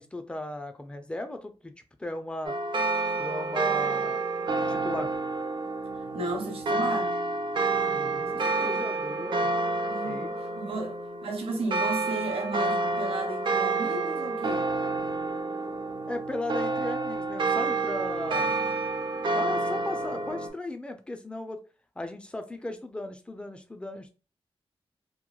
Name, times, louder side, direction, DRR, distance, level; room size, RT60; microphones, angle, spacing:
voice 1, 0.0-1.7 2.0-2.6 3.2-4.2 4.7-5.1 7.8-9.5 10.0-10.3 10.7-10.8 16.1-18.6 19.1-21.6 22.0-24.1, left 1 dB, 10° left, 0.4 m, -37 dB
sound 1, 2.4-20.5, right 3 dB, 50° right, 0.5 m, -29 dB
voice 2, 5.9-7.1 8.3-8.8 9.9-14.7, right 2 dB, 70° right, 0.8 m, -34 dB
2.9 x 2.1 x 2.3 m
wide cardioid pair, 130°, 10 cm